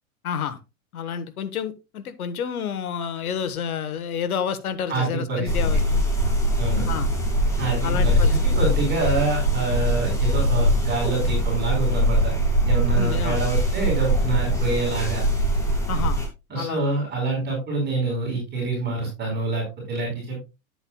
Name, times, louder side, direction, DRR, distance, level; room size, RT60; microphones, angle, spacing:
voice 1, 0.2-0.6 0.9-6.1 6.9-7.1 7.8-8.4 12.9-13.4 15.9-16.2 16.5-16.9, left 7 dB, 85° left, 12 dB, 1.3 m, -29 dB
voice 2, 4.9-5.5 6.6-6.8 7.6-12.3 12.7-15.2 16.5-20.4, right 2 dB, 25° right, 0 dB, 4.5 m, -26 dB
sound 1, 5.5-16.3, equal, 5° left, 2.3 m, -22 dB
10.0 x 7.9 x 2.3 m, 0.27 s
hypercardioid pair, 140°, 43 cm